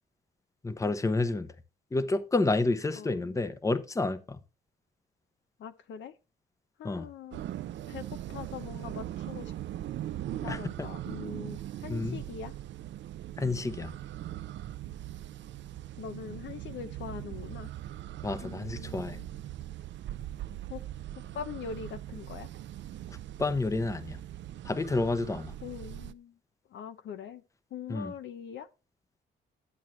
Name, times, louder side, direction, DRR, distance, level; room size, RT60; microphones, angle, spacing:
voice 1, 0.6-1.5 1.9-4.4 6.8-7.1 10.5-10.6 11.9-12.2 13.4-13.9 18.2-19.2 23.4-24.2 24.6-25.5 27.9-28.1, left 3 dB, 15° left, 0.8 m, -29 dB
voice 2, 3.0-3.5 5.6-6.1 6.8-7.5 7.9-9.5 10.4-12.5 16.0-17.7 18.4-19.2 20.7-20.8 21.3-22.5 25.6-26.4 26.7-27.4 27.7-28.7, left 7 dB, 70° left, 0.8 m, -42 dB
sound 1, 7.3-26.1, right 12 dB, 65° right, 0.6 m, -40 dB
11.0 x 7.6 x 3.1 m
cardioid pair, 90°, 20 cm